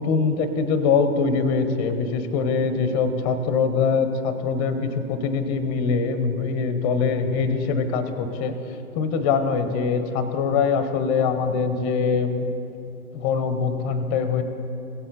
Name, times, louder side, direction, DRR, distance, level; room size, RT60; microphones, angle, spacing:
voice 1, 0.0-8.5 8.9-12.5 13.1-14.4, left 5 dB, 25° left, 9 dB, 0.8 m, -23 dB
17.5 x 7.5 x 3.9 m, 2.8 s
figure-of-eight pair, 120°, 44 cm